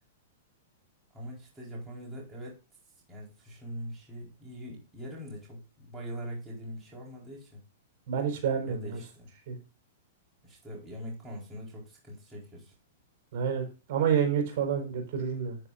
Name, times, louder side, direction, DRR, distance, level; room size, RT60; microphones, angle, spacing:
voice 1, 1.1-2.6 3.1-7.6 8.7-9.3 10.4-12.7, equal, 10° right, -4 dB, 4.3 m, -42 dB
voice 2, 8.1-9.0 9.5-9.6 13.3-15.6, right 7 dB, 55° right, 3 dB, 4.7 m, -29 dB
11.0 x 9.6 x 2.5 m, 0.30 s
hypercardioid pair, 145°, 0 cm